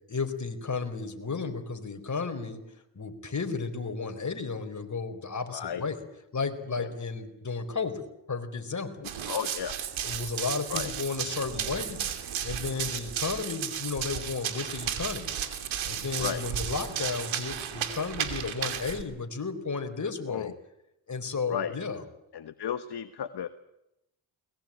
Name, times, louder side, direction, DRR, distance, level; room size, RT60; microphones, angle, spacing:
voice 1, 0.1-2.6 2.9-6.0 6.3-9.1 10.0-12.0 12.4-15.4 15.8-20.5 21.1-22.0, left 4 dB, 40° left, 6 dB, 4.5 m, -33 dB
voice 2, 5.5-5.9 6.8-6.9 9.0-9.8 10.7-10.9 16.2-16.4 20.0-20.5 21.5-21.8 22.3-23.5, left 8 dB, 55° left, 9 dB, 1.4 m, -34 dB
Run, 9.0-19.0, right 9 dB, 85° right, 2.9 m, -34 dB
22.0 x 21.0 x 8.9 m, 0.86 s
supercardioid pair, 60°, 46 cm